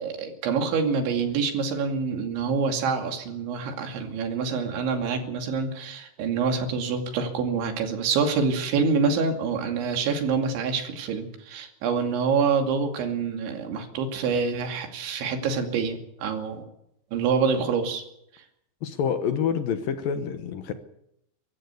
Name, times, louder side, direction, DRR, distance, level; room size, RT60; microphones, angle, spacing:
voice 1, 0.0-16.7 17.1-18.0 18.3-18.4, right 5 dB, 85° right, 4 dB, 4.9 m, -26 dB
voice 2, 18.8-20.7, left 7 dB, 70° left, 9 dB, 2.3 m, -27 dB
24.0 x 14.0 x 8.3 m, 0.78 s
omnidirectional pair, 5.2 m